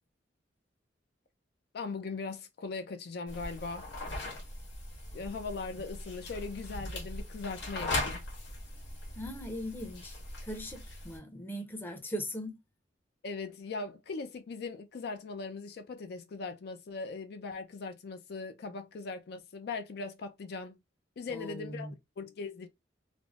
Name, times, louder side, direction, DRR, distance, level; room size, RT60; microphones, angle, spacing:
voice 1, 1.7-3.9 5.1-8.2 13.2-20.8 21.2-21.9 22.2-22.7, left 4 dB, 60° left, 0.4 m, -39 dB
sound 1, 3.3-11.2, left 2 dB, 90° left, 1.5 m, -39 dB
voice 2, 9.2-10.2 10.4-12.6 21.3-21.9, equal, 10° left, 0.6 m, -39 dB
3.3 x 2.0 x 2.3 m
head